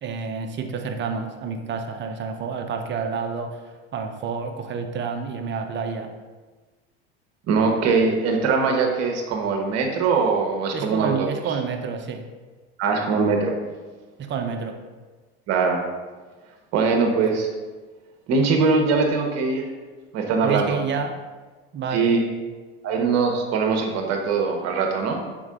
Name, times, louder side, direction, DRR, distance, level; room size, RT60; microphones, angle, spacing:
voice 1, 0.0-3.6 3.9-6.1 10.7-12.2 14.2-14.8 20.4-21.2 21.7-22.2, right 5 dB, 35° right, 5 dB, 0.8 m, -29 dB
voice 2, 7.5-11.4 12.8-13.5 15.5-15.8 16.7-17.5 18.3-19.7 20.1-20.8 21.9-22.2 22.8-25.2, right 4 dB, 55° right, 2 dB, 1.2 m, -21 dB
6.1 x 4.6 x 3.7 m, 1.3 s
supercardioid pair, 95°, 31 cm